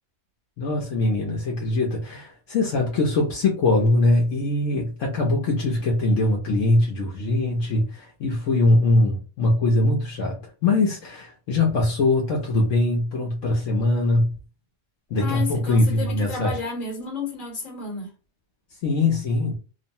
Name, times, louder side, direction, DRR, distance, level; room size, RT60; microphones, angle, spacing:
voice 1, 0.6-14.3 15.1-16.6 18.8-19.6, left 2 dB, 70° left, 1.0 m, -22 dB
voice 2, 15.2-18.1, left 4 dB, 40° left, 1.2 m, -32 dB
3.1 x 2.0 x 2.6 m
omnidirectional pair, 1.4 m